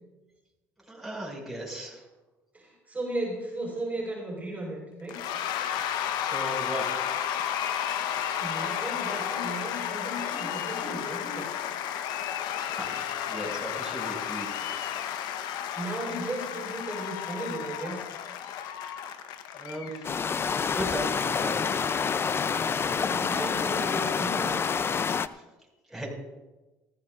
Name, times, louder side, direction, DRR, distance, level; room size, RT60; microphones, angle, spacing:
voice 1, 0.9-2.0 6.1-7.0 12.7-14.5 19.5-20.0 20.7-21.5 25.9-26.1, equal, ahead, -4 dB, 5.6 m, -36 dB
voice 2, 2.5-5.2 8.0-11.5 15.8-18.1 22.9-24.7, right 1 dB, 20° right, -4 dB, 5.0 m, -36 dB
Cheering / Applause / Crowd, 5.1-20.7, left 9 dB, 70° left, 1.0 m, -32 dB
sound 1, 20.0-25.3, left 6 dB, 35° left, 0.5 m, -27 dB
19.5 x 14.5 x 2.5 m, 1.1 s
supercardioid pair, 75°, 7 cm